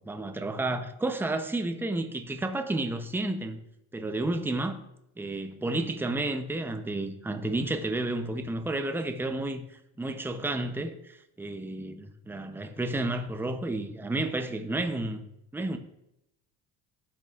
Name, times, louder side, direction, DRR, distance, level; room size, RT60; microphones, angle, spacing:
voice 1, 0.1-3.6 3.9-4.8 5.2-15.3 15.5-15.8, right 2 dB, 5° right, 0.6 m, -31 dB
12.0 x 4.7 x 2.4 m
cardioid pair, 105°, 38 cm